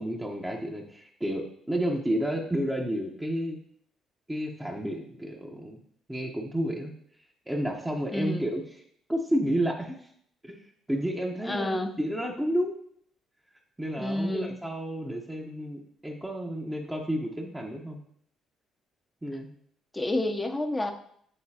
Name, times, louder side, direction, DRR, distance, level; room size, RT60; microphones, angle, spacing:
voice 1, 0.0-3.6 4.3-5.8 6.1-6.9 7.5-8.6 9.1-9.9 10.4-10.6 10.9-12.8 13.8-18.0 19.2-19.5, equal, 10° right, -1 dB, 1.1 m, -31 dB
voice 2, 8.1-8.5 11.5-12.0 14.0-14.6 19.9-20.9, left 1 dB, 15° left, 5 dB, 0.8 m, -29 dB
8.5 x 3.9 x 2.9 m, 0.67 s
supercardioid pair, 60°, 0 cm